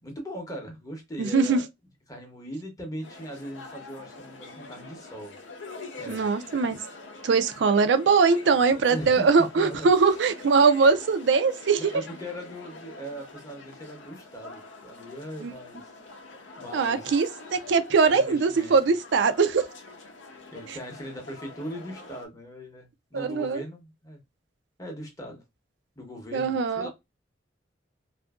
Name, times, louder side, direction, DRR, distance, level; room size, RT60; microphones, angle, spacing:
voice 1, 0.0-1.6 2.1-5.3 6.0-6.3 8.8-9.3 9.6-9.9 11.8-15.8 16.6-17.1 18.0-18.9 20.5-24.2 24.8-25.4 26.0-26.9, equal, 20° left, 0.7 m, -39 dB
voice 2, 1.2-1.6 6.1-6.8 7.2-11.9 15.4-15.5 16.7-19.7 23.1-23.6 26.3-26.9, right 5 dB, 70° right, 0.4 m, -22 dB
sound 1, 3.0-22.2, left 3 dB, 85° left, 0.6 m, -45 dB
2.6 x 2.5 x 2.3 m
head